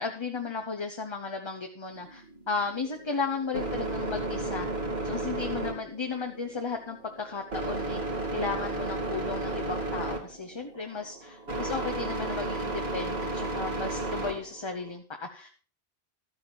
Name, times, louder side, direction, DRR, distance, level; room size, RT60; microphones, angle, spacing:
voice 1, 0.0-4.7 5.0-8.0 8.3-15.5, left 4 dB, 30° left, 4 dB, 0.9 m, -35 dB
sound 1, 1.9-14.9, right 2 dB, 80° right, 2.7 m, -33 dB
12.5 x 8.9 x 4.5 m, 0.38 s
omnidirectional pair, 1.0 m